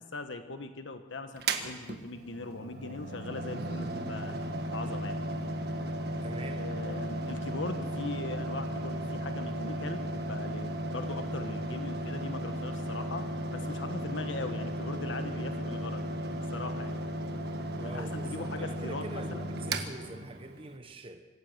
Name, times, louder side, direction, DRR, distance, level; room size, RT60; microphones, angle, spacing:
voice 1, 0.1-4.4 4.7-5.2 6.4-16.0 16.5-17.0 17.8-19.5, left 3 dB, 85° left, 7 dB, 1.3 m, -40 dB
Mechanical fan, 1.4-20.7, right 1 dB, 55° right, 1.6 m, -35 dB
voice 2, 6.2-6.7 17.8-21.3, right 2 dB, 30° right, 6 dB, 1.0 m, -44 dB
25.5 x 15.0 x 6.8 m, 1.4 s
head